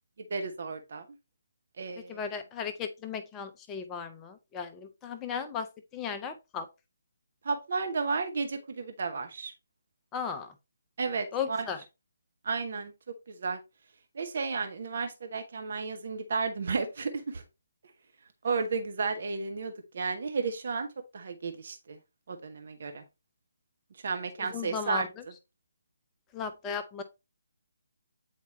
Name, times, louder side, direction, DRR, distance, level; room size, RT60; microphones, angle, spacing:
voice 1, 0.3-1.0 1.8-2.2 7.4-9.5 11.0-11.7 12.4-13.6 14.1-17.4 18.4-20.9 21.1-22.0 22.3-23.0 24.0-25.1, right 4 dB, 45° right, 6 dB, 0.8 m, -33 dB
voice 2, 2.1-6.7 10.1-10.5 11.3-11.8 24.4-25.0 26.3-27.0, left 6 dB, 15° left, 6 dB, 0.6 m, -36 dB
8.3 x 4.5 x 3.0 m, 0.25 s
figure-of-eight pair, 145°, 0 cm